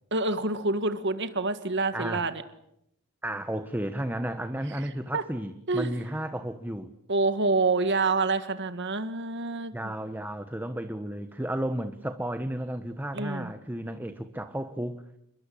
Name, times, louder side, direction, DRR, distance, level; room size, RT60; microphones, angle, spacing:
voice 1, 0.1-2.4 5.1-5.2 5.7-6.0 7.1-9.9 13.1-13.5, right 3 dB, 55° right, 10 dB, 1.8 m, -27 dB
voice 2, 3.2-6.9 9.7-15.2, right 1 dB, 10° right, 8 dB, 1.2 m, -33 dB
29.0 x 22.0 x 8.6 m, 0.78 s
head